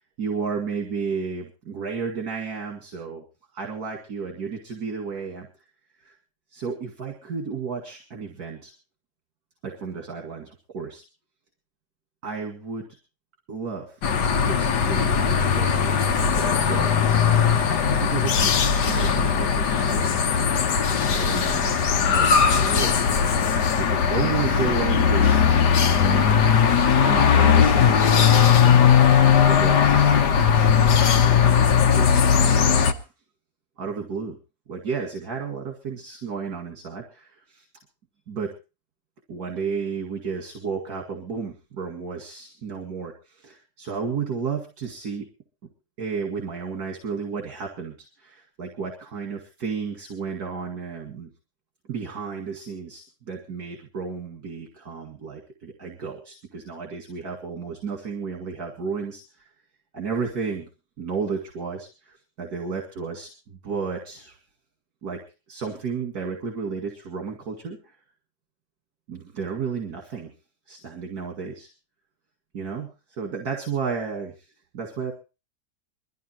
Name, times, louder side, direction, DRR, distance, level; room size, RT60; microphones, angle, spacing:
voice 1, 0.2-3.2 3.5-5.5 6.0-6.1 6.5-8.7 9.6-11.0 12.2-13.0 13.5-14.0 14.4-17.0 17.4-20.5 20.9-23.3 23.7-25.6 26.0-26.4 27.0-29.0 29.2-30.5 31.2-33.0 33.8-34.4 34.7-37.7 38.3-38.5 39.3-45.3 46.0-51.3 51.9-59.5 59.9-60.7 61.0-64.4 65.0-65.2 65.5-67.9 69.1-70.3 70.7-71.7 72.5-74.3 74.7-75.1, right 5 dB, 65° right, 2 dB, 2.7 m, -33 dB
sound 1, 14.0-32.9, left 7 dB, 80° left, 1.7 m, -19 dB
22.5 x 13.5 x 3.0 m, 0.31 s
omnidirectional pair, 1.8 m